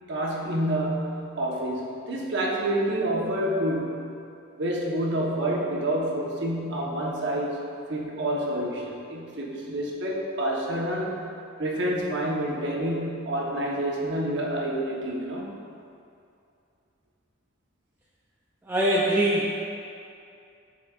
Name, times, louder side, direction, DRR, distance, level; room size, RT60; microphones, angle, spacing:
voice 1, 0.1-4.1 4.6-7.6 7.9-11.3 11.6-15.5, right 1 dB, 60° right, -2 dB, 0.9 m, -28 dB
voice 2, 18.6-19.7, right 1 dB, 10° right, -5 dB, 0.4 m, -23 dB
10.5 x 4.1 x 2.4 m, 2.6 s
head